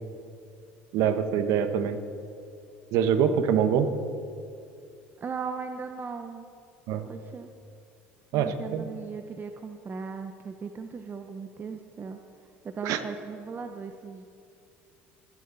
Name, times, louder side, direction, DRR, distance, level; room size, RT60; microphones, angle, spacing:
voice 1, 0.9-2.0 2.9-3.9 6.9-7.0 8.3-8.8 12.8-13.0, right 8 dB, 65° right, 9 dB, 1.4 m, -24 dB
voice 2, 5.2-6.4 7.0-7.5 8.3-12.2 12.6-14.3, right 5 dB, 35° right, 6 dB, 0.9 m, -38 dB
26.5 x 10.5 x 4.1 m, 2.5 s
hypercardioid pair, 75°, 6 cm